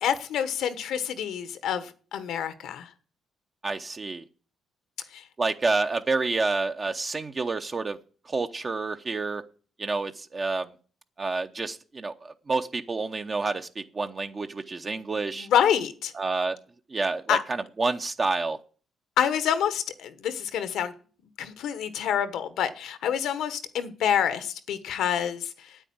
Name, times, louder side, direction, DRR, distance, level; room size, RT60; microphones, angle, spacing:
voice 1, 0.0-2.9 5.1-5.2 14.8-16.1 17.3-17.4 19.2-20.9 21.4-25.8, left 9 dB, 80° left, 1.2 m, -27 dB
voice 2, 3.6-4.2 5.4-8.0 8.3-9.4 9.8-10.7 11.2-15.5 16.1-16.6 16.9-17.4 17.8-18.6, right 3 dB, 35° right, 0.8 m, -28 dB
9.1 x 9.0 x 8.7 m
cardioid pair, 90°, 0 cm